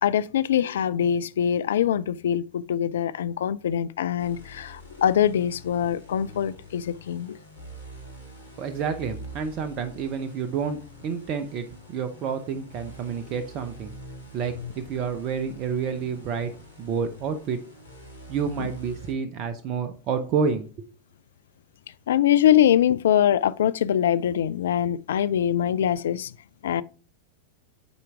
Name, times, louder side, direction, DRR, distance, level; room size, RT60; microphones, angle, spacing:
voice 1, 0.0-7.4 18.6-18.7 22.1-26.3 26.6-26.8, left 10 dB, 60° left, 0.3 m, -23 dB
sound 1, 4.2-19.1, equal, 85° left, 1.8 m, -45 dB
voice 2, 8.6-13.9 14.3-16.5 16.8-17.6 18.3-20.9, right 6 dB, 40° right, 0.6 m, -29 dB
8.1 x 4.5 x 3.5 m
figure-of-eight pair, 90°, 0 cm